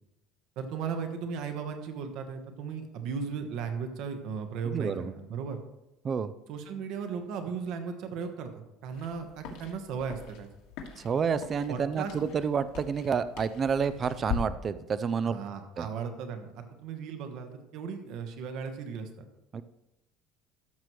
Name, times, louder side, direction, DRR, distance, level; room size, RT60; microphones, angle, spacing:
voice 1, 0.6-5.6 6.5-10.5 11.7-12.1 15.2-19.1, right 6 dB, 60° right, 6 dB, 1.1 m, -36 dB
voice 2, 4.7-5.1 6.0-6.3 11.0-15.3 15.8-15.9 19.5-19.6, right 6 dB, 30° right, 14 dB, 0.3 m, -29 dB
sound 1, 8.9-14.4, left 8 dB, 80° left, 1.7 m, -42 dB
13.5 x 6.1 x 3.1 m, 0.90 s
cardioid pair, 150°, 0 cm